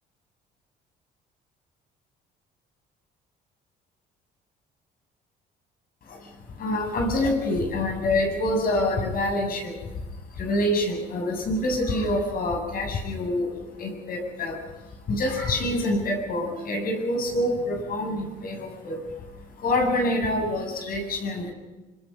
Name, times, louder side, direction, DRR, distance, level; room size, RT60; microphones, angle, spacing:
voice 1, 6.0-21.5, left 1 dB, 55° left, 3 dB, 7.7 m, -27 dB
25.0 x 24.5 x 5.4 m, 1.1 s
cardioid pair, 105°, 17 cm